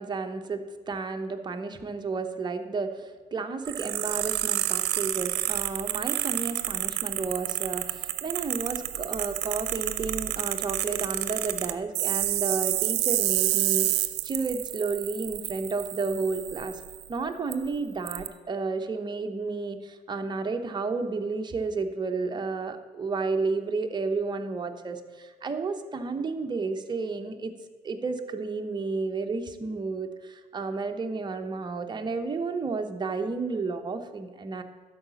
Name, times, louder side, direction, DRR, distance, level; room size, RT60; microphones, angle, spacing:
voice 1, 0.0-16.8 17.1-27.5 27.8-34.6, right 4 dB, 25° right, 5 dB, 0.9 m, -32 dB
sound 1, 3.6-17.0 17.5-17.6 18.1-18.3, right 15 dB, 80° right, 0.6 m, -29 dB
11.5 x 4.9 x 6.9 m, 1.4 s
cardioid pair, 110°, 17 cm